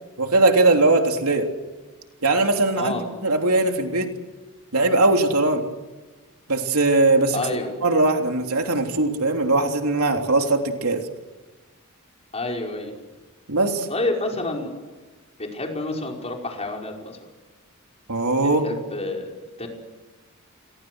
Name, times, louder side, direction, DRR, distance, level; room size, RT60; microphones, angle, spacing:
voice 1, 0.2-1.5 2.2-4.1 4.7-5.7 6.5-7.4 7.8-11.0 13.5-13.9 18.1-18.6, right 2 dB, 80° right, 4 dB, 3.3 m, -20 dB
voice 2, 2.8-3.1 7.3-7.7 12.3-12.9 13.9-14.7 15.4-17.2 18.6-19.7, left 2 dB, 30° left, 1 dB, 5.3 m, -28 dB
29.5 x 22.5 x 6.4 m, 1.3 s
head